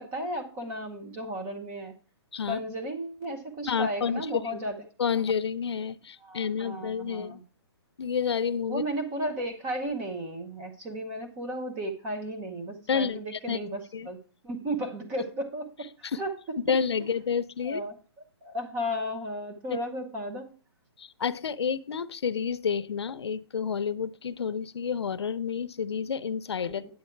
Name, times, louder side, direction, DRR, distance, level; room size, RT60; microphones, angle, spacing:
voice 1, 0.0-1.9 2.5-4.8 6.2-7.4 8.7-16.3 17.6-18.0 18.4-20.5, equal, 10° right, 5 dB, 0.7 m, -34 dB
voice 2, 3.6-4.5 5.0-7.4 8.0-8.8 12.9-13.2 13.5-13.6 13.9-14.1 16.0-16.2 16.7-17.8 21.0-26.9, left 6 dB, 75° left, 14 dB, 0.7 m, -29 dB
9.7 x 8.0 x 4.5 m, 0.37 s
hypercardioid pair, 175°, 14 cm